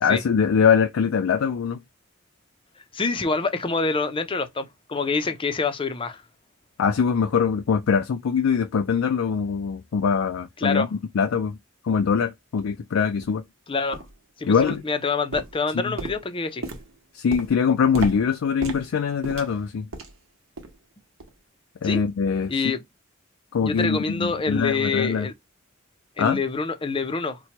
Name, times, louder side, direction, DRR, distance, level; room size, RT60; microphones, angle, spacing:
voice 1, 0.0-1.8 6.8-10.9 11.1-11.6 11.8-13.4 14.5-14.8 15.9-16.0 17.1-19.9 21.8-22.5 23.5-25.3 26.2-26.4, left 6 dB, 80° left, 0.4 m, -22 dB
voice 2, 2.9-6.2 10.6-10.9 13.7-14.0 14.4-16.6 21.8-22.0 22.5-22.8 23.6-25.3 26.2-27.4, left 4 dB, 25° left, 0.5 m, -26 dB
sound 1, 11.9-12.0 12.6-12.7 13.2-13.4 13.9-14.2 14.6-15.0 15.3-20.3 20.6-20.8 21.2-21.4 21.9-22.0, right 2 dB, 80° right, 1.0 m, -36 dB
4.3 x 2.2 x 2.8 m
head